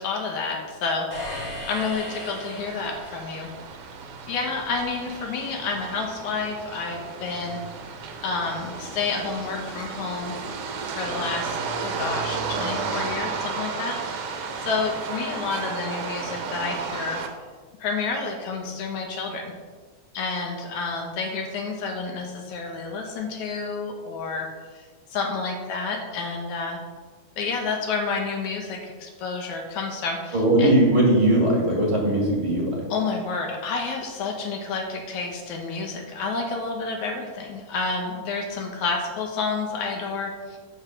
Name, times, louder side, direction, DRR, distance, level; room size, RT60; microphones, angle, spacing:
voice 1, 0.0-3.5 4.3-7.6 8.2-10.4 11.0-14.0 14.6-17.2 17.8-19.5 20.1-24.5 24.7-26.8 27.4-30.8 32.9-40.6, left 4 dB, 75° left, 1 dB, 2.4 m, -29 dB
sound 1, 1.1-3.3, left 1 dB, 10° left, 1.5 m, -36 dB
sound 2, 1.9-17.3, right 5 dB, 65° right, 1.5 m, -33 dB
voice 2, 30.3-32.8, right 1 dB, 25° right, -2 dB, 1.6 m, -19 dB
8.0 x 5.1 x 7.0 m, 1.4 s
omnidirectional pair, 3.5 m